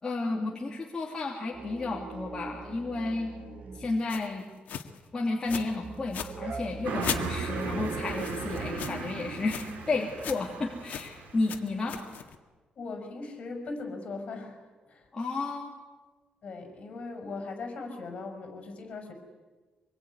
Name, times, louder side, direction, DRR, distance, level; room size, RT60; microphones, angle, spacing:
voice 1, 0.0-3.3 3.7-4.4 5.1-12.0 15.1-15.8, left 3 dB, 25° left, -2 dB, 3.0 m, -32 dB
sound 1, 1.5-4.0 5.5-8.7, right 4 dB, 55° right, 3.5 m, -41 dB
sound 2, 4.1-4.3 4.7-5.0 5.5-5.7 6.0-6.3 7.0-9.1 9.4-9.7 10.0-10.5 10.9-11.1 11.4-12.4, left 9 dB, 80° left, 1.9 m, -38 dB
Car passing by, 6.8-11.8, right 4 dB, 85° right, 4.4 m, -37 dB
voice 2, 12.7-14.6 14.9-15.1 16.4-19.1, left 3 dB, 45° left, 5 dB, 6.2 m, -39 dB
25.5 x 22.0 x 9.9 m, 1.3 s
cardioid pair, 150°, 3 cm